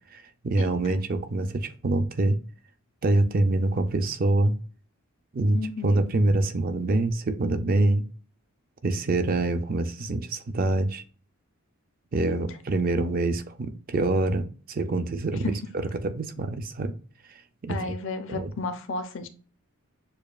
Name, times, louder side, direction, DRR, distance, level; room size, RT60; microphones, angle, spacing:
voice 1, 0.1-2.4 3.0-4.6 5.3-8.0 8.8-11.0 12.1-15.5 16.0-16.9 17.6-17.9 18.3-18.5, right 2 dB, 40° right, 0.4 m, -25 dB
voice 2, 5.5-6.0 12.2-12.4 13.0-13.1 15.4-15.6 17.7-19.3, left 3 dB, 55° left, 0.5 m, -33 dB
6.7 x 2.3 x 2.3 m
head